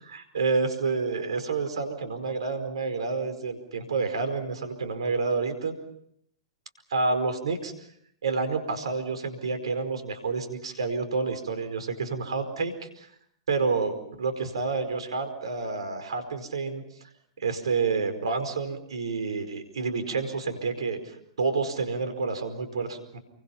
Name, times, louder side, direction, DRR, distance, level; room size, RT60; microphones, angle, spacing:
voice 1, 0.1-5.7 6.9-7.7 8.2-13.1 13.5-16.8 17.4-23.2, right 4 dB, 70° right, 9 dB, 4.7 m, -29 dB
29.5 x 24.0 x 5.8 m, 0.71 s
figure-of-eight pair, 105°, 3 cm